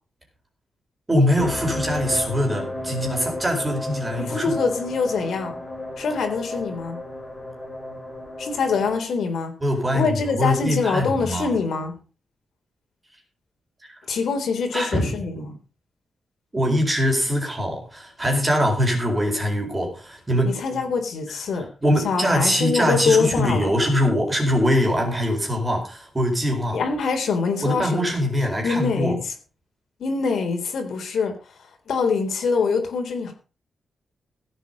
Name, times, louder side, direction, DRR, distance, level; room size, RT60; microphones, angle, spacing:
voice 1, 1.1-4.6 9.6-11.5 14.7-15.1 16.5-20.6 21.5-26.8 27.6-29.2, equal, 15° right, 1 dB, 4.5 m, -23 dB
sound 1, 1.4-9.0, left 1 dB, 15° left, 3.3 m, -33 dB
voice 2, 4.2-5.5 6.0-7.0 8.4-9.5 9.9-12.0 14.1-15.5 20.4-21.7 22.0-23.7 26.7-28.1 28.6-29.3 30.0-31.3 31.9-33.3, left 5 dB, 65° left, 4 dB, 3.7 m, -24 dB
16.5 x 8.2 x 5.3 m, 0.35 s
wide cardioid pair, 175°, 0 cm